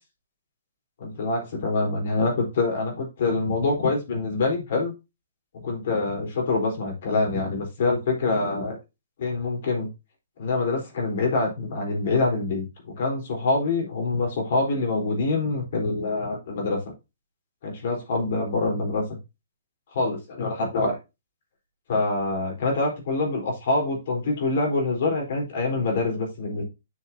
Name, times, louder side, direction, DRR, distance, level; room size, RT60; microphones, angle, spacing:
voice 1, 1.0-4.9 5.6-8.8 9.2-9.9 10.4-16.8 17.6-19.0 19.9-21.0 21.9-26.6, left 3 dB, 55° left, 3.9 m, -25 dB
9.7 x 5.9 x 2.8 m
hypercardioid pair, 125°, 0 cm